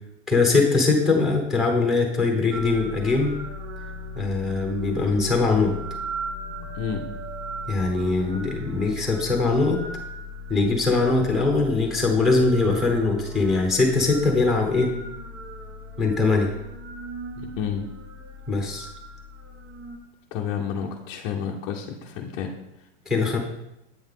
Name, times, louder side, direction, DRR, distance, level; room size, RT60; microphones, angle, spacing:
voice 1, 0.3-3.4 4.2-5.8 7.7-9.8 10.5-14.9 16.0-16.5 18.5-18.9 23.1-23.4, left 3 dB, ahead, 1 dB, 0.9 m, -21 dB
sound 1, 2.5-20.0, equal, 65° right, 1.3 m, -37 dB
voice 2, 6.8-7.1 17.4-17.9 20.3-22.5, left 7 dB, 25° left, -2 dB, 0.5 m, -30 dB
8.2 x 5.8 x 3.6 m, 0.88 s
supercardioid pair, 160°, 38 cm